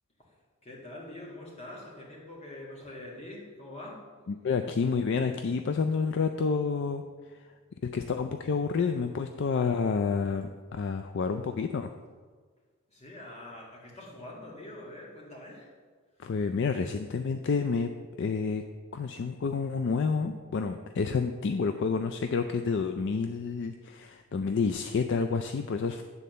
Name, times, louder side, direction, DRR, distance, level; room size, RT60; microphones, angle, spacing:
voice 1, 0.6-4.1 12.9-15.7, left 1 dB, 30° left, -3 dB, 1.9 m, -44 dB
voice 2, 4.3-7.0 7.8-11.9 16.2-17.9 18.2-18.6 18.9-26.0, left 5 dB, 55° left, 7 dB, 0.4 m, -29 dB
9.4 x 4.1 x 6.7 m, 1.5 s
head